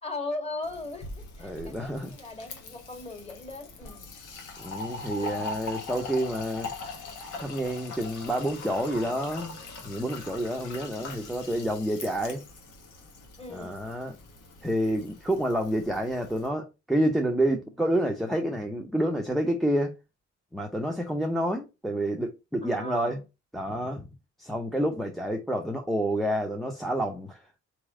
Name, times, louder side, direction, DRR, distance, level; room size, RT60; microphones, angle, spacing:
voice 1, 0.0-4.2 5.2-5.4 13.4-13.9 22.6-23.2, left 2 dB, 20° left, 2.0 m, -38 dB
Fill (with liquid), 0.6-16.5, left 3 dB, 75° left, 1.5 m, -41 dB
voice 2, 1.4-2.1 4.6-6.7 7.4-9.6 9.8-12.4 13.5-14.2 14.6-19.9 20.5-23.2 23.5-24.1 24.4-27.4, right 1 dB, ahead, 0.7 m, -28 dB
4.1 x 3.1 x 3.6 m
cardioid pair, 90°, 30 cm